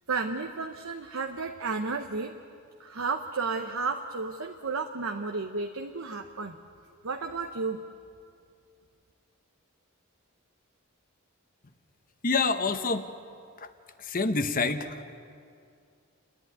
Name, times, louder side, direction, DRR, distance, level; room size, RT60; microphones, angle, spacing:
voice 1, 0.1-2.3 2.8-6.6 7.0-7.8, right 4 dB, 70° right, 4 dB, 0.9 m, -32 dB
voice 2, 12.2-13.1 13.6-13.7 14.0-15.0, left 4 dB, 40° left, 9 dB, 1.0 m, -27 dB
29.5 x 11.0 x 9.3 m, 2.4 s
head